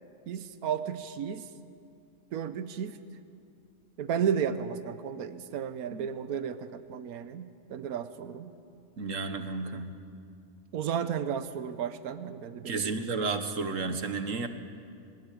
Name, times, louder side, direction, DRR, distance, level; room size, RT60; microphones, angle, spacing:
voice 1, 0.3-1.5 2.3-3.0 4.0-8.5 10.7-13.0, right 8 dB, 80° right, 11 dB, 1.3 m, -33 dB
voice 2, 9.0-9.9 12.7-14.5, right 4 dB, 60° right, 8 dB, 1.7 m, -32 dB
21.0 x 20.5 x 8.5 m, 2.4 s
omnidirectional pair, 1.5 m